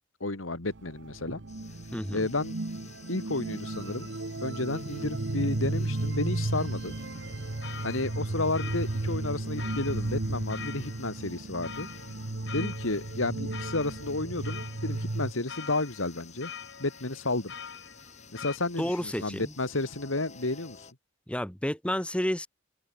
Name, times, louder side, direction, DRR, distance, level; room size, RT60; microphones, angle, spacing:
voice 1, 0.2-1.4 2.1-2.5 3.1-4.1 4.4-6.9 7.8-11.9 12.5-16.5 16.8-17.5 18.3-20.8, left 2 dB, 90° left, 2.5 m, -32 dB
sound 1, 0.7-15.3, right 2 dB, 65° right, 1.1 m, -34 dB
sound 2, 1.5-20.9, left 6 dB, 35° left, 6.2 m, -52 dB
voice 2, 1.9-2.3 18.8-19.5 21.3-22.5, equal, 5° left, 1.5 m, -30 dB
sound 3, 7.1-18.6, left 7 dB, 65° left, 2.0 m, -45 dB
open air
head